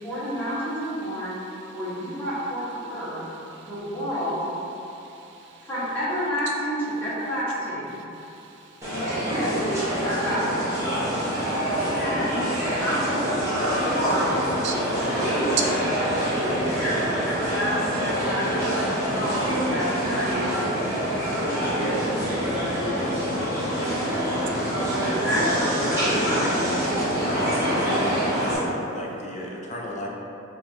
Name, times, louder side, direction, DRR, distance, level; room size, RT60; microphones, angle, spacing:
voice 1, 0.0-1.4 1.7-3.2 3.6-4.5 5.6-8.0 9.2-9.7 10.0-10.5 11.6-14.4 15.1-15.7 16.1-20.6 21.2-22.1 25.0-26.5, equal, 10° left, -11 dB, 1.0 m, -29 dB
voice 2, 1.2-1.8 3.1-3.7 4.8-5.7 7.9-9.3 10.9-11.7 13.8-13.9 14.6-15.1 15.6-15.7 27.1-27.2, right 3 dB, 60° right, 1 dB, 0.4 m, -43 dB
sound 1, 8.8-28.6, equal, 15° right, 0.9 m, -26 dB
voice 3, 25.3-26.7 27.1-30.1, left 1 dB, 35° left, -2 dB, 0.4 m, -32 dB
3.2 x 2.3 x 4.2 m, 2.9 s
head